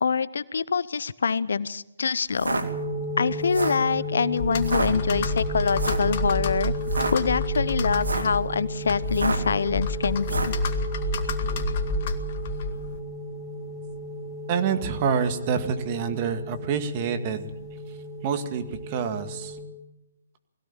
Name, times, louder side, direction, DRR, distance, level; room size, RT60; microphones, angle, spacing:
voice 1, 0.0-2.6 3.2-6.7 7.1-10.6, left 5 dB, 70° left, 18 dB, 0.8 m, -25 dB
sound 1, 2.3-2.6 3.4-3.9 4.6-4.9 5.8-6.1 6.8-7.1 7.9-8.4 9.1-9.5 10.2-10.6, right 3 dB, 85° right, 2.7 m, -28 dB
sound 2, 2.5-19.6, equal, 5° left, 7.7 m, -34 dB
Computer keyboard, 4.4-13.0, left 1 dB, 45° left, 2.1 m, -29 dB
voice 2, 14.5-17.5 17.9-18.0 18.2-19.6, right 7 dB, 35° right, 7 dB, 2.1 m, -27 dB
21.5 x 16.5 x 7.3 m, 0.91 s
hypercardioid pair, 140°, 0 cm